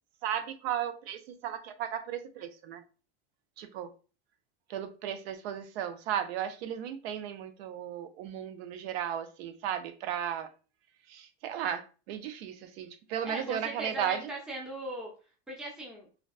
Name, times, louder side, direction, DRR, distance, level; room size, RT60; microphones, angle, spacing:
voice 1, 0.2-2.8 3.6-3.9 4.7-10.5 11.1-14.3, right 9 dB, 70° right, 0.6 m, -35 dB
voice 2, 13.2-15.1 15.5-16.1, right 1 dB, ahead, 0.6 m, -38 dB
3.5 x 2.3 x 2.3 m
supercardioid pair, 135°, 32 cm